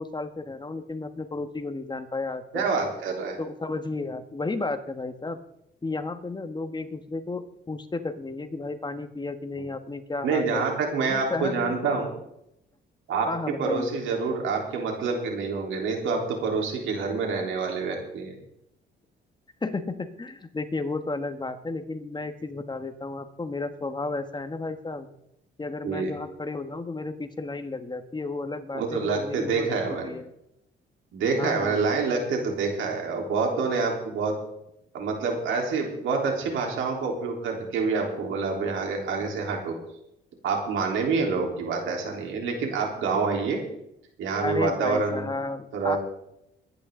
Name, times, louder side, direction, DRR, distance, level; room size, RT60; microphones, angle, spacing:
voice 1, 0.0-2.7 3.4-5.4 5.8-10.7 11.0-12.0 13.3-14.0 19.6-25.1 25.6-30.3 31.4-31.8 44.4-46.0, left 3 dB, 20° left, 8 dB, 1.3 m, -33 dB
voice 2, 2.5-3.4 10.2-12.1 13.1-13.3 13.6-18.3 25.8-26.1 28.7-30.1 31.1-34.3 34.9-39.8 40.4-43.6 44.2-45.3 45.7-46.0, right 4 dB, 80° right, 1 dB, 3.7 m, -27 dB
21.5 x 10.5 x 3.8 m, 0.80 s
cardioid pair, 90°, 20 cm